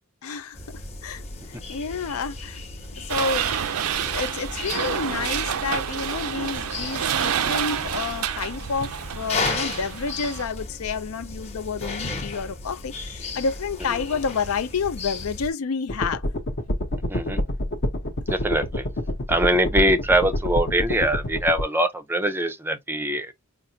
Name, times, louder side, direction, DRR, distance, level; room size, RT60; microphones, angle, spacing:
voice 1, 0.2-1.2 1.5-2.6 3.1-3.5 4.0-16.2, left 5 dB, 80° left, 0.5 m, -29 dB
sound 1, 0.5-15.5, left 3 dB, 30° left, 0.9 m, -35 dB
sound 2, 3.1-10.4, right 8 dB, 90° right, 0.5 m, -28 dB
sound 3, 15.9-21.6, left 1 dB, 55° left, 0.9 m, -27 dB
voice 2, 17.1-17.4 18.3-18.9 19.3-23.3, right 1 dB, 10° right, 0.5 m, -23 dB
5.3 x 2.0 x 2.7 m
head